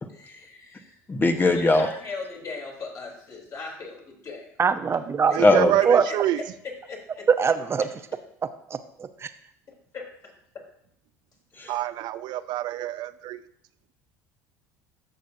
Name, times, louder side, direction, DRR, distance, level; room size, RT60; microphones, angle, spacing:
voice 1, 0.1-1.0 1.5-4.5 6.1-6.2 6.9-7.3 9.9-10.3, left 3 dB, 40° left, -1 dB, 3.4 m, -38 dB
voice 2, 1.1-1.9 5.4-5.8 11.6-11.7, left 2 dB, 25° left, 6 dB, 1.3 m, -19 dB
voice 3, 4.6-5.5 5.8-6.0 7.4-7.9 8.7-9.3, right 6 dB, 30° right, 10 dB, 0.8 m, -23 dB
voice 4, 5.3-6.4 11.7-13.4, right 14 dB, 60° right, 14 dB, 0.5 m, -27 dB
14.0 x 6.5 x 2.7 m, 0.72 s
hypercardioid pair, 70°, 8 cm